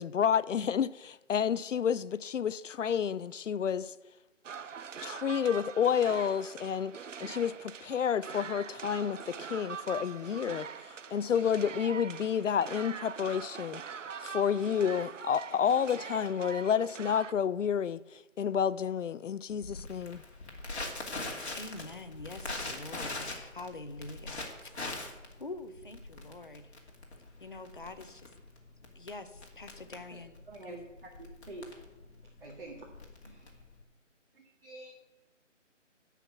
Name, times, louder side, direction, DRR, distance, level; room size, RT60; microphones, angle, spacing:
voice 1, 0.0-3.9 5.0-10.7 11.1-13.8 14.2-20.2, left 8 dB, 75° left, 0.5 m, -30 dB
sound 1, 4.4-17.3, right 6 dB, 80° right, 0.7 m, -43 dB
Crackle, 19.6-33.8, left 2 dB, 60° left, 2.6 m, -42 dB
voice 2, 21.5-24.8 25.4-26.6 27.4-28.3 28.9-30.4 30.7-30.8, left 2 dB, 40° left, 0.8 m, -45 dB
voice 3, 30.5-31.7 32.4-32.9 33.2-33.6 34.3-34.9, right 2 dB, 45° right, 1.9 m, -47 dB
11.5 x 5.8 x 8.1 m
figure-of-eight pair, 175°, 37 cm